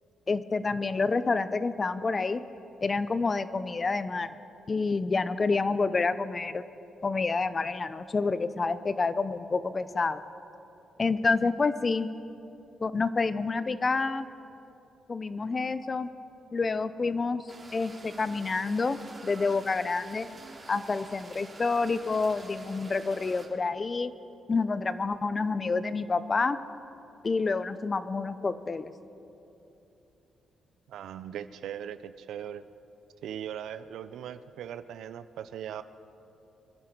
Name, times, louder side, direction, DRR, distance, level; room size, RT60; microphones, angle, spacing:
voice 1, 0.3-2.4 2.8-4.4 4.7-6.6 7.0-10.2 11.0-12.1 12.8-14.3 15.1-16.1 16.5-17.4 17.7-20.3 20.7-24.1 24.5-26.6 27.2-28.9, left 4 dB, 40° left, 14 dB, 0.7 m, -28 dB
sound 1, 17.5-23.5, right 3 dB, 40° right, 2.7 m, -48 dB
voice 2, 30.9-32.6 33.2-35.8, right 9 dB, 75° right, 13 dB, 0.5 m, -39 dB
25.0 x 11.0 x 4.6 m, 2.9 s
hypercardioid pair, 50°, 0 cm